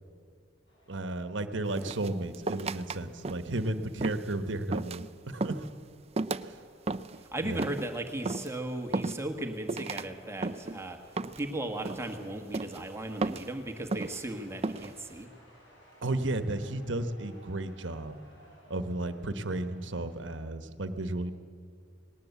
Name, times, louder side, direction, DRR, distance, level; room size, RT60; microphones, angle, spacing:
sound 1, 0.7-20.5, equal, 70° left, 6.8 m, -61 dB
voice 1, 0.9-5.7 6.4-6.6 7.4-7.7 16.0-18.2 18.7-21.3, right 2 dB, 70° right, 10 dB, 1.2 m, -33 dB
sound 2, 1.8-3.0 3.3-3.6 4.0-4.3 4.7-5.1 5.4-5.7 6.2-6.5 6.9-7.2 7.6-7.9 8.3-8.5 8.9-9.4 9.7-10.1 10.4-10.8 11.2-11.5 11.9-12.2 12.5-12.8 13.2-13.5 13.9-14.2 14.6-14.9, right 3 dB, 35° right, 0.5 m, -34 dB
voice 2, 7.2-15.3, right 1 dB, 15° right, 4 dB, 1.5 m, -36 dB
19.5 x 18.5 x 8.3 m, 2.3 s
head